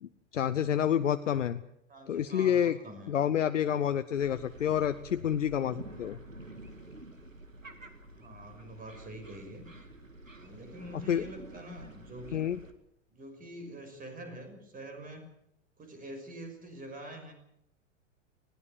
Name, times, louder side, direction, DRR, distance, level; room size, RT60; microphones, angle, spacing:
voice 1, 0.0-1.6 2.1-2.8 3.1-6.2 11.1-11.2 12.3-12.6, left 9 dB, 70° left, 12 dB, 0.9 m, -28 dB
voice 2, 1.9-3.1 8.1-9.7 10.3-12.5 13.1-15.3 15.8-17.3, right 1 dB, 20° right, 7 dB, 6.1 m, -46 dB
sound 1, 4.1-12.7, right 2 dB, 90° right, 2.2 m, -49 dB
20.5 x 17.0 x 8.9 m, 0.77 s
figure-of-eight pair, 90°, 38 cm